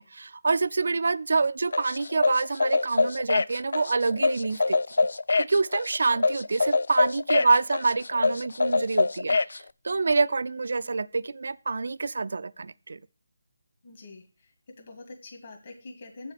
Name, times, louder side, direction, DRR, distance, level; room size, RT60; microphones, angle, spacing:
voice 1, 0.0-5.1 5.4-13.0, right 4 dB, 55° right, 0.4 m, -27 dB
sound 1, 1.7-9.6, left 3 dB, 70° left, 0.4 m, -25 dB
voice 2, 13.8-14.5 14.8-16.3, left 3 dB, 40° left, 1.7 m, -43 dB
7.6 x 5.9 x 7.6 m
figure-of-eight pair, 175°, 0 cm